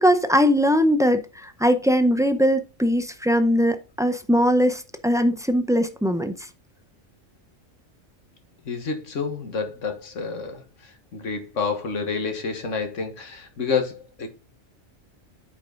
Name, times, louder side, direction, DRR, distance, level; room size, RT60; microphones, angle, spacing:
voice 1, 0.0-6.3, equal, 5° right, 0.4 m, -20 dB
voice 2, 8.7-10.6 11.1-14.3, left 5 dB, 65° left, 1.7 m, -28 dB
8.0 x 5.3 x 3.8 m
omnidirectional pair, 1.4 m